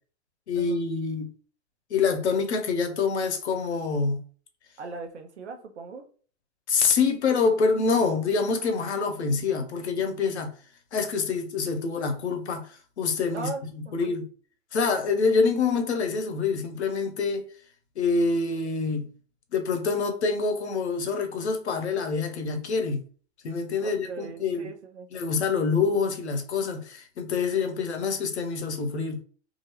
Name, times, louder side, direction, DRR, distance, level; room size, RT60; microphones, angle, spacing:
voice 1, 0.5-1.3 1.9-4.2 6.7-10.5 10.9-13.5 13.9-14.3 14.7-17.4 18.0-19.1 19.5-23.0 23.4-24.7 25.1-29.2, left 4 dB, 85° left, 0.7 m, -26 dB
voice 2, 4.8-6.0 13.3-14.1 23.8-25.1, right 4 dB, 85° right, 0.7 m, -39 dB
2.9 x 2.6 x 2.8 m
hypercardioid pair, 95°, 33 cm